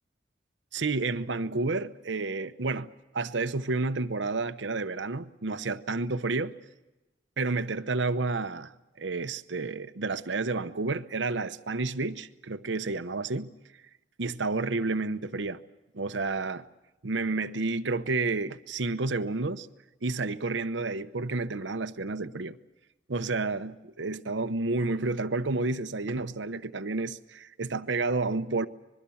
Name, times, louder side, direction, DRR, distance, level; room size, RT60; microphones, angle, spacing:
voice 1, 0.7-2.9 3.1-6.5 7.4-8.7 9.0-13.5 14.2-15.6 15.9-16.6 17.0-19.7 20.0-22.6 23.1-28.7, right 3 dB, 80° right, 0.9 m, -30 dB
25.5 x 21.5 x 7.1 m
head